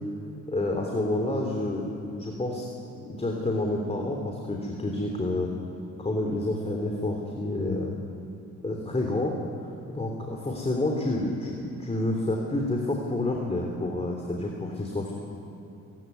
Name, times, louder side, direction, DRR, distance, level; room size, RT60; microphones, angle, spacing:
voice 1, 0.5-2.7 3.0-5.5 6.0-8.0 8.6-9.4 9.9-15.1, left 2 dB, 20° left, 1 dB, 3.3 m, -29 dB
26.5 x 15.5 x 9.5 m, 2.7 s
cardioid pair, 90°, 30 cm